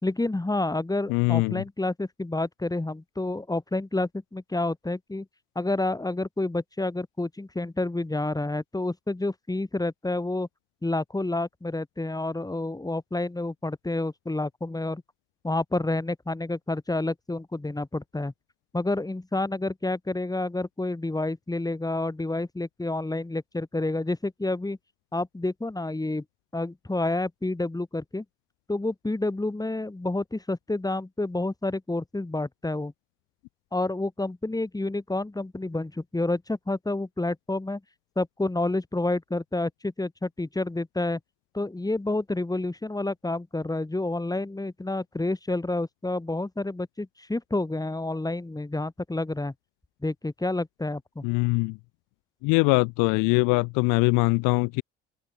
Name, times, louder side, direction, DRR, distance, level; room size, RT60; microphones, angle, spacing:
voice 1, 0.0-5.3 5.6-10.5 10.8-15.0 15.4-18.3 18.7-24.8 25.1-26.2 26.5-28.2 28.7-32.9 33.7-37.8 38.2-41.2 41.5-49.5 50.0-51.3, left 2 dB, 10° left, 3.9 m, -29 dB
voice 2, 1.1-1.6 51.2-51.7 52.4-54.8, left 30 dB, 65° left, 0.9 m, -22 dB
open air
hypercardioid pair, 65°, 35 cm